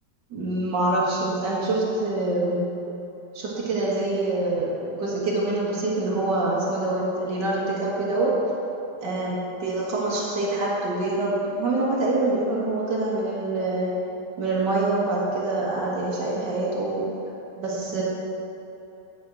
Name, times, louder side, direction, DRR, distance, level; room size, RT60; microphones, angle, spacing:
voice 1, 0.3-2.6 3.3-8.3 9.0-14.0 14.4-17.1 17.6-18.0, right 2 dB, 85° right, -5 dB, 2.2 m, -25 dB
10.0 x 5.6 x 6.1 m, 3.0 s
omnidirectional pair, 1.8 m